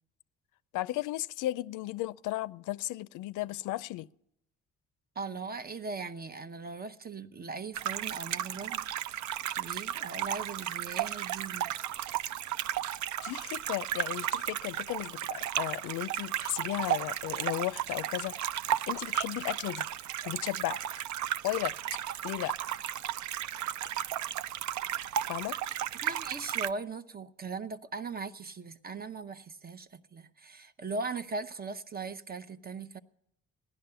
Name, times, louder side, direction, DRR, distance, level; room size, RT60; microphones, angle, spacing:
voice 1, 0.7-4.1 13.2-18.4 18.9-19.9 20.3-20.8 21.4-21.7 22.2-22.6 25.3-25.6, left 16 dB, 85° left, 0.4 m, -35 dB
voice 2, 5.2-8.9 9.6-11.8 26.0-33.0, right 4 dB, 30° right, 0.7 m, -39 dB
sound 1, 7.7-26.7, right 11 dB, 75° right, 0.5 m, -34 dB
16.0 x 11.0 x 6.8 m
cardioid pair, 90°, 30 cm